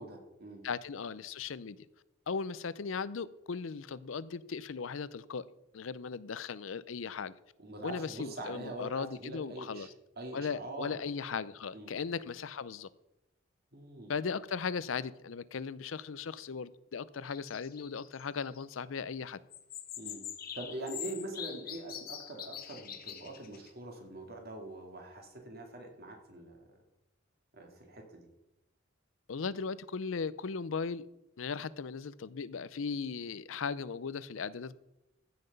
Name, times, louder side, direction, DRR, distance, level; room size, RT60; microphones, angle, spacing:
voice 1, 0.0-0.6 7.6-9.9 10.2-11.0 11.7-11.9 13.7-14.1 20.0-20.2 20.5-26.8 27.5-28.3, right 2 dB, 50° right, 3 dB, 2.3 m, -43 dB
voice 2, 0.6-1.8 2.3-5.4 5.7-7.3 7.8-9.9 10.3-12.9 14.1-19.4 29.3-31.0 31.4-34.8, left 5 dB, 90° left, 17 dB, 0.6 m, -37 dB
sound 1, 17.3-18.6 19.5-23.7, left 9 dB, 50° left, 1.1 m, -44 dB
15.0 x 5.9 x 5.3 m, 0.90 s
head